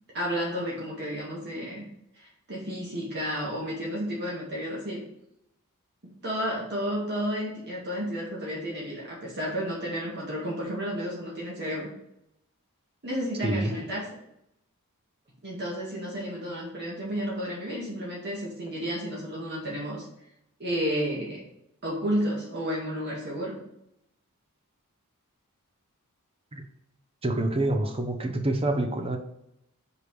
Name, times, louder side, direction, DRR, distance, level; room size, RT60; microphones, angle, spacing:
voice 1, 0.1-1.8 2.2-5.0 6.0-11.9 13.0-14.0 15.4-20.0 20.6-21.4 21.8-23.6, equal, 50° right, -4 dB, 1.8 m, -32 dB
voice 2, 13.4-13.7 26.5-26.6 27.2-29.2, right 1 dB, 25° right, 5 dB, 0.8 m, -27 dB
5.1 x 4.8 x 4.8 m, 0.80 s
head